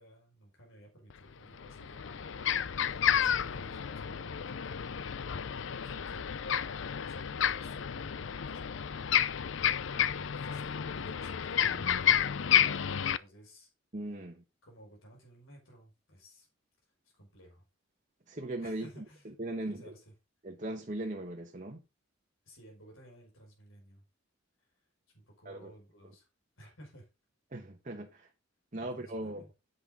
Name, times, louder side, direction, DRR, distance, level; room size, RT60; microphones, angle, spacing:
voice 1, 0.0-5.2 5.5-6.6 7.1-9.2 9.9-12.8 13.2-13.7 14.6-16.5 17.1-17.6 18.6-20.1 22.4-24.0 24.6-24.7 25.1-26.3 26.6-27.1 28.8-29.5, right 1 dB, 90° left, 5.8 m, -56 dB
sound 1, 1.1-1.2 1.6-13.2, left 9 dB, 65° left, 0.5 m, -31 dB
voice 2, 13.9-14.4 18.3-19.0 19.4-19.9 20.4-21.8 25.4-25.7 27.5-28.3 28.7-29.4, right 1 dB, 40° right, 1.2 m, -39 dB
10.0 x 8.0 x 3.9 m
head